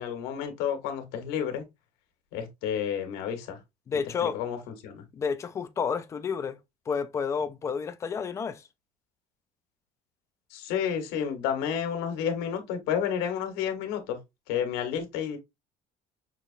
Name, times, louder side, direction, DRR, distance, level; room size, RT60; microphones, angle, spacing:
voice 1, 0.0-1.7 2.3-3.6 4.2-4.6 4.8-5.0 10.5-14.2 14.5-15.4, left 8 dB, 85° left, 1.4 m, -30 dB
voice 2, 3.9-4.4 5.1-6.6 6.9-8.6, left 6 dB, 20° left, 0.3 m, -30 dB
5.9 x 2.9 x 2.6 m
cardioid pair, 180°, 16 cm